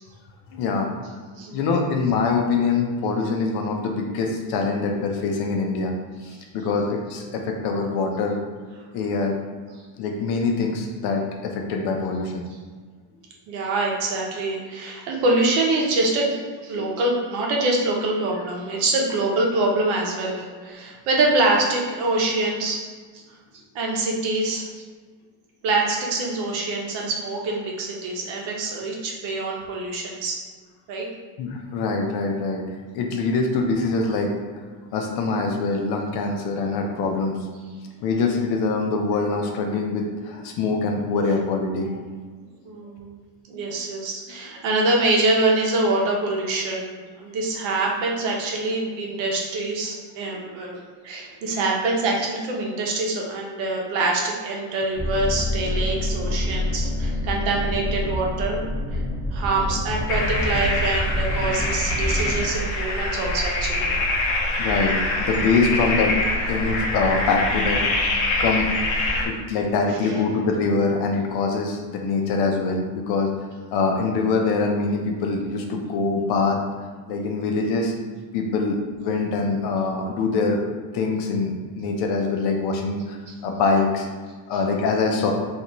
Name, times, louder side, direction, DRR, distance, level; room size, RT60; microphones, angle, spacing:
voice 1, 0.5-0.9 1.5-5.9 6.5-8.4 8.9-9.4 10.0-12.4 16.7-17.0 31.4-32.6 32.9-34.5 34.9-37.4 38.0-41.9 43.5-43.6 50.3-50.4 64.6-66.2 66.5-67.8 68.4-68.7 69.2-73.3 73.7-76.6 77.1-77.9 78.3-80.6 80.9-84.1 84.5-85.3, left 4 dB, 60° left, 2 dB, 0.5 m, -24 dB
voice 2, 13.5-22.9 23.1-23.2 23.7-24.8 25.6-30.4 30.9-31.1 42.6-43.2 43.5-50.8 51.0-58.6 58.9-59.0 59.3-64.0 69.9-70.2 83.3-83.4, right 2 dB, 75° right, -1 dB, 0.9 m, -25 dB
sound 1, 54.9-62.4, left 1 dB, 10° right, 0.7 m, -27 dB
sound 2, 60.1-69.3, left 2 dB, 80° left, 0.8 m, -24 dB
3.2 x 2.6 x 2.9 m, 1.5 s
cardioid pair, 180°, 46 cm